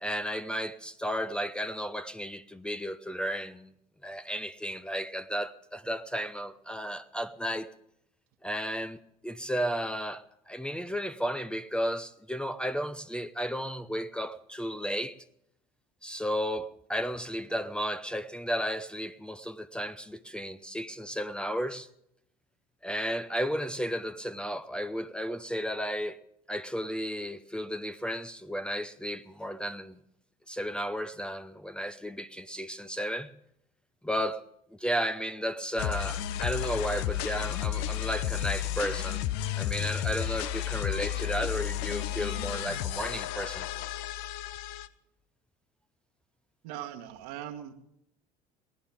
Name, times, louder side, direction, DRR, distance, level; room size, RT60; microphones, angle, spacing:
voice 1, 0.0-3.7 4.0-7.7 8.4-15.2 16.0-21.9 22.8-26.2 26.5-30.0 30.5-33.3 34.0-34.4 34.7-39.2 39.6-43.7, equal, 5° left, 0.8 m, -33 dB
sound 1, 35.8-44.9, left 11 dB, 55° left, 0.8 m, -32 dB
voice 2, 46.6-47.7, right 11 dB, 60° right, 1.5 m, -40 dB
23.0 x 17.0 x 3.6 m
figure-of-eight pair, 65°, 20 cm